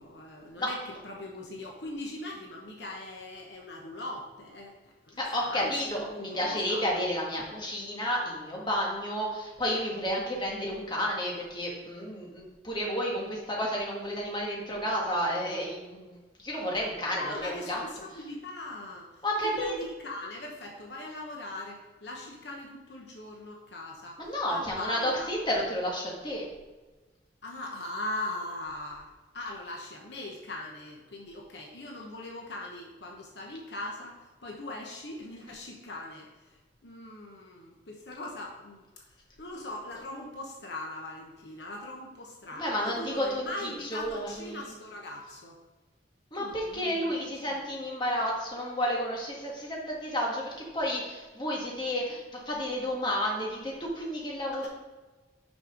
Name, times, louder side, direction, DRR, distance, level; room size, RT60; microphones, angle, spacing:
voice 1, 0.0-6.9 17.1-25.3 27.4-45.6 46.3-47.5 54.5-54.7, left 1 dB, 65° left, 0 dB, 1.0 m, -40 dB
voice 2, 5.2-17.8 19.2-19.8 24.2-26.5 42.6-44.7 46.3-54.7, equal, 25° left, -3 dB, 1.7 m, -31 dB
6.1 x 5.6 x 5.0 m, 1.2 s
head